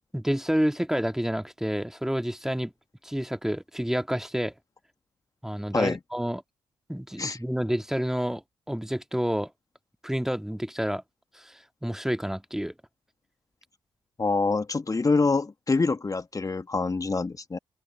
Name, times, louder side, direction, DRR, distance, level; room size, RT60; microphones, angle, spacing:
voice 1, 0.1-2.7 3.0-4.5 5.4-6.4 6.9-8.4 8.7-9.5 10.0-11.0 11.3-12.7, equal, 5° right, 1.8 m, -29 dB
voice 2, 14.2-17.6, left 3 dB, 30° left, 1.4 m, -25 dB
open air
hypercardioid pair, 45°, 12 cm